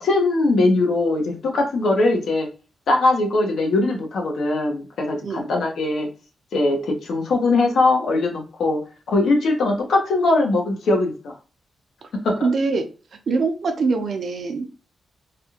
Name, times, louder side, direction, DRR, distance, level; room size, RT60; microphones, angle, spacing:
voice 1, 0.0-2.5 2.9-6.1 6.5-8.8 9.1-11.3 12.2-12.5, left 2 dB, 75° left, 1 dB, 0.9 m, -20 dB
voice 2, 12.4-12.8 13.3-14.7, right 4 dB, 60° right, 6 dB, 0.6 m, -23 dB
3.3 x 2.3 x 2.8 m, 0.35 s
cardioid pair, 110°, 0 cm